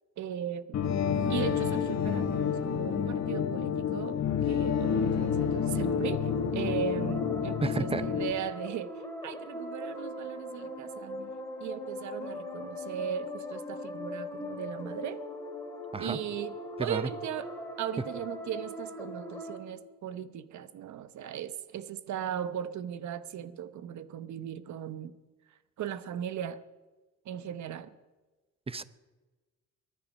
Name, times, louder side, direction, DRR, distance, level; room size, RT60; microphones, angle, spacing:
voice 1, 0.2-0.8 1.3-11.3 11.6-15.2 16.0-16.5 16.8-17.5 17.8-25.2 25.8-26.6 27.2-27.9, right 9 dB, 70° right, 0.9 m, -38 dB
sound 1, 0.7-8.3, left 7 dB, 60° left, 1.7 m, -29 dB
sound 2, 5.0-19.6, left 1 dB, 10° left, 2.7 m, -40 dB
voice 2, 7.6-8.0 15.9-16.2 16.8-17.1 28.7-28.8, right 4 dB, 20° right, 0.7 m, -31 dB
23.0 x 10.5 x 5.4 m
cardioid pair, 90°, 30 cm